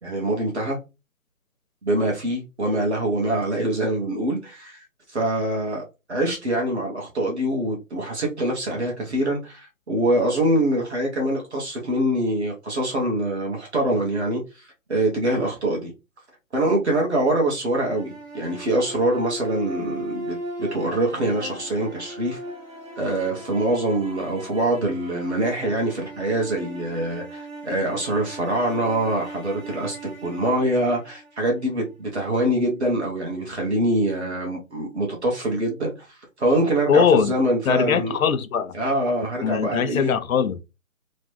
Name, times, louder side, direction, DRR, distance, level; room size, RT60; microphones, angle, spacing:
voice 1, 0.0-0.8 1.8-4.8 5.1-5.8 6.1-15.9 16.5-22.4 23.0-30.0 30.2-38.2 38.7-40.1, right 1 dB, 55° right, 1.1 m, -24 dB
sound 1, 17.6-31.7, right 1 dB, 70° right, 1.4 m, -38 dB
voice 2, 36.9-37.3 37.7-38.7 39.4-40.6, left 7 dB, 80° left, 0.6 m, -21 dB
3.1 x 2.1 x 3.1 m
hypercardioid pair, 175°, 41 cm